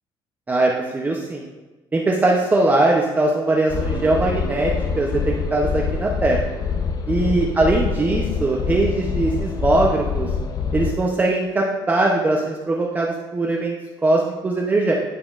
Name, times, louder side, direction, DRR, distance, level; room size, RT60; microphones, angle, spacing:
voice 1, 0.5-1.4 1.9-6.4 7.1-10.3 10.7-13.7 14.0-14.9, right 2 dB, 15° right, -1 dB, 0.6 m, -20 dB
sound 1, 3.7-11.0, left 6 dB, 40° left, 0.6 m, -25 dB
sound 2, 3.8-6.8, right 2 dB, 55° right, 2.3 m, -38 dB
12.0 x 4.2 x 2.4 m, 1.1 s
cardioid pair, 125°, 10 cm